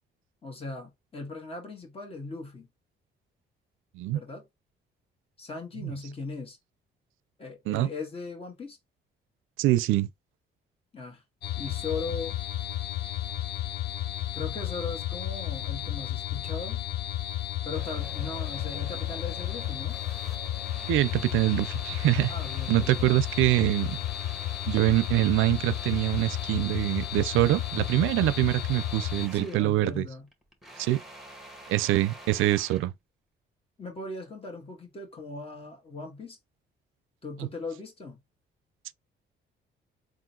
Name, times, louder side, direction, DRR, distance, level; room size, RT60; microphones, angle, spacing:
voice 1, 0.4-2.7 4.1-4.5 5.4-6.6 7.4-8.8 10.9-11.2 11.6-12.4 14.3-16.8 17.6-20.0 22.3-23.1 29.3-30.3 33.8-36.4 37.2-38.2, left 3 dB, 30° left, 1.6 m, -38 dB
voice 2, 9.6-10.1 20.9-22.3 22.7-24.0 24.7-30.0 30.8-31.0 31.7-32.9, right 16 dB, 90° right, 0.4 m, -24 dB
sound 1, 11.4-29.3, left 13 dB, 55° left, 0.4 m, -33 dB
sound 2, 17.7-29.7 30.1-32.9, right 1 dB, ahead, 1.5 m, -47 dB
3.8 x 2.5 x 4.2 m
cardioid pair, 90°, 20 cm